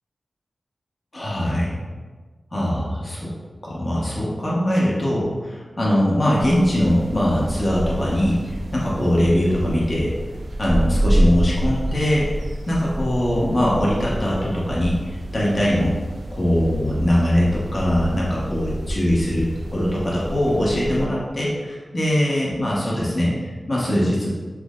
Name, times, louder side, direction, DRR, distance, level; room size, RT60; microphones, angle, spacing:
voice 1, 1.1-1.8 2.5-3.3 3.6-8.4 8.7-10.1 10.6-12.3 12.7-15.9 16.3-19.4 19.7-24.3, equal, 35° left, -6 dB, 1.0 m, -21 dB
sound 1, 6.3-21.1, right 1 dB, 75° right, 0.5 m, -28 dB
5.9 x 2.1 x 3.6 m, 1.4 s
wide cardioid pair, 95°, 0 cm